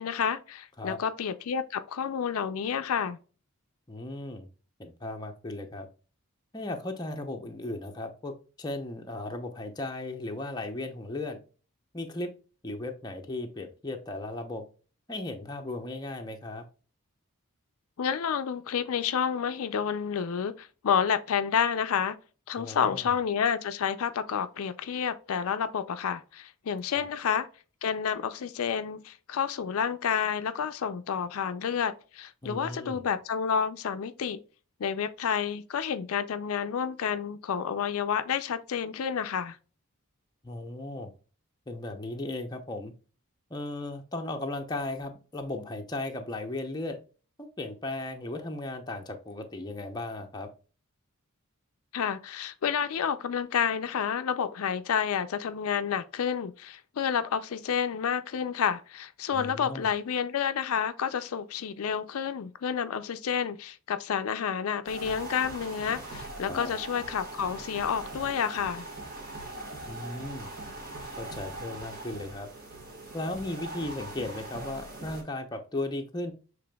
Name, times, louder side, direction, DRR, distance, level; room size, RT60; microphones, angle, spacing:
voice 1, 0.0-3.2 18.0-22.2 22.5-27.5 27.8-34.4 34.8-39.6 51.9-68.9, left 7 dB, 70° left, 0.4 m, -30 dB
voice 2, 3.9-4.5 4.8-5.9 6.5-11.4 11.9-12.3 12.6-14.6 15.1-16.6 22.6-23.2 26.9-27.0 32.4-33.0 40.4-41.1 41.7-42.9 43.5-47.0 47.4-50.5 59.3-59.9 66.5-66.7 69.9-70.5 71.2-72.5 73.1-76.3, left 2 dB, 20° left, 0.6 m, -36 dB
sound 1, 64.9-75.2, right 2 dB, 40° right, 1.5 m, -41 dB
6.8 x 3.3 x 2.2 m
head